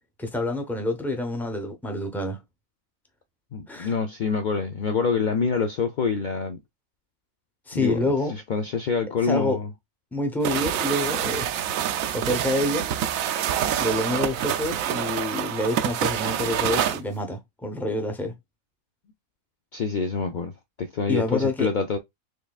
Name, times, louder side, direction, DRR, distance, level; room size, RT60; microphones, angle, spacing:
voice 1, 0.2-2.4 3.7-3.9 7.7-8.3 9.2-9.6 10.1-11.6 12.1-12.9 13.8-18.3 21.1-21.7, left 1 dB, ahead, 0.6 m, -27 dB
voice 2, 3.5-6.6 7.7-9.7 19.7-20.5 20.8-22.0, left 5 dB, 70° left, 0.4 m, -26 dB
sound 1, 10.4-17.0, right 10 dB, 75° right, 1.0 m, -26 dB
4.8 x 3.4 x 2.3 m
omnidirectional pair, 1.5 m